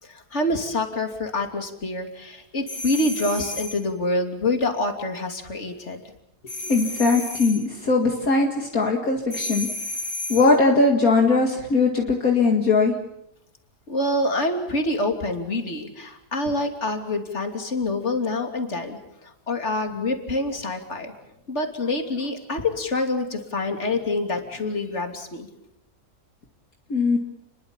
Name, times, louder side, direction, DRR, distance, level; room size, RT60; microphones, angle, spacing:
voice 1, 0.0-6.1 13.9-21.1 21.5-25.5, left 2 dB, 45° left, 4 dB, 3.2 m, -26 dB
sound 1, 2.7-3.9 6.5-7.7 9.3-10.6, left 2 dB, 90° left, 5.0 m, -32 dB
voice 2, 6.6-9.7 10.3-12.9 26.9-27.2, left 3 dB, 60° left, 1 dB, 2.6 m, -20 dB
29.5 x 22.0 x 7.3 m, 0.80 s
omnidirectional pair, 1.7 m